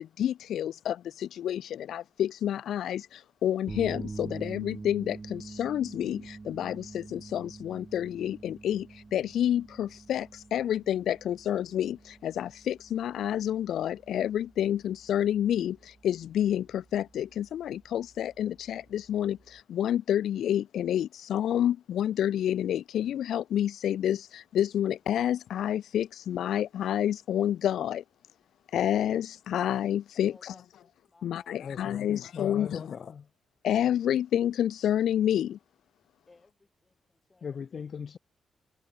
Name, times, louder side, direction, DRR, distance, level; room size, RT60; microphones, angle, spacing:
voice 1, 0.2-0.9 1.4-1.6 1.9-3.0 3.4-5.2 5.6-6.2 6.6-6.7 7.3-8.8 9.1-10.2 10.5-11.9 12.4-15.7 16.0-16.6 16.9-17.6 17.9-18.5 19.1-19.3 19.8-24.2 24.6-28.0 28.7-29.2 29.5-30.3 31.2-32.7 33.7-35.5, left 10 dB, 80° left, 0.3 m, -28 dB
sound 1, 3.7-19.6, right 3 dB, 35° right, 1.3 m, -46 dB
voice 2, 30.3-32.3 36.3-36.9 37.3-38.0, left 3 dB, 30° left, 7.6 m, -61 dB
voice 3, 31.6-33.3 37.4-38.2, left 6 dB, 60° left, 1.0 m, -39 dB
supercardioid pair, 50°, 0 cm